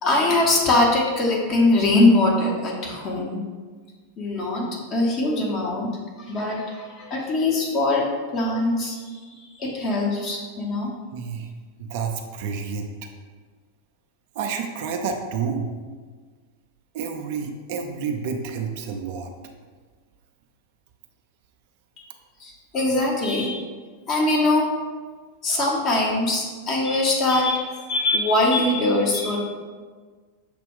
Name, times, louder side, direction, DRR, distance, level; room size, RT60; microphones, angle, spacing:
voice 1, 0.0-3.4 4.2-4.6 4.9-5.9 6.2-8.1 8.3-10.9 22.4-23.6 24.1-24.7 25.4-29.4, left 2 dB, 30° left, -2 dB, 0.8 m, -22 dB
voice 2, 11.1-11.5 11.8-12.9 14.4-15.7 16.9-19.3, right 5 dB, 50° right, 4 dB, 0.4 m, -29 dB
6.4 x 2.2 x 3.5 m, 1.5 s
figure-of-eight pair, 90°, 0 cm